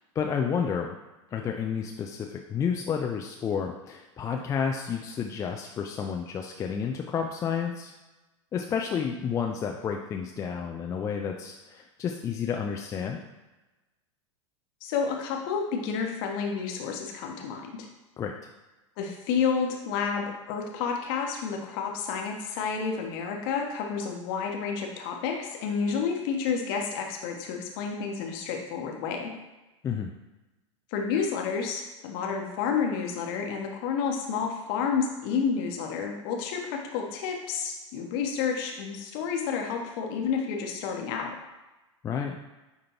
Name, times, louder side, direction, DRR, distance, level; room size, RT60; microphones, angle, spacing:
voice 1, 0.2-1.0 1.3-7.9 8.5-13.2 18.2-18.4 29.8-30.1 42.0-42.3, left 7 dB, 20° left, 2 dB, 0.4 m, -30 dB
voice 2, 14.8-17.9 19.0-29.3 30.9-41.3, left 6 dB, 45° left, 2 dB, 1.1 m, -30 dB
9.7 x 3.7 x 3.0 m, 1.1 s
figure-of-eight pair, 85°, 16 cm